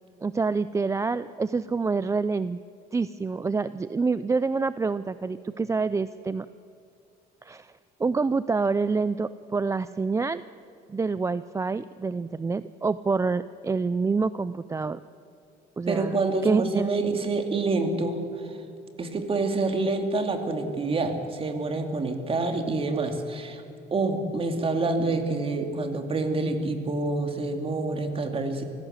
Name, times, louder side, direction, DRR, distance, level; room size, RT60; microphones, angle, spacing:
voice 1, 0.2-2.6 2.9-6.5 7.4-7.7 8.0-10.4 10.9-15.0 15.8-16.9, right 4 dB, 20° right, 15 dB, 0.4 m, -27 dB
voice 2, 15.9-18.6 19.0-23.6 23.9-28.6, right 3 dB, 35° right, 5 dB, 2.6 m, -27 dB
23.5 x 16.0 x 8.1 m, 2.6 s
cardioid pair, 110°, 17 cm